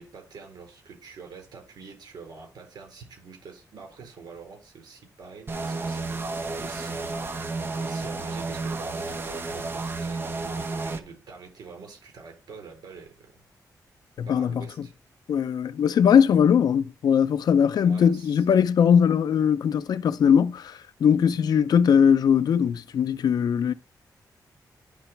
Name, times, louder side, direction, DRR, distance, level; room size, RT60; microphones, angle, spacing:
voice 1, 0.0-6.3 6.6-13.4 14.3-14.9 17.8-18.4, right 5 dB, 85° right, 4.6 m, -46 dB
sound 1, 5.5-11.0, right 3 dB, 35° right, 0.9 m, -31 dB
voice 2, 14.2-14.5 15.3-23.7, left 7 dB, 75° left, 0.5 m, -20 dB
11.0 x 4.0 x 4.5 m
wide cardioid pair, 155°, 7 cm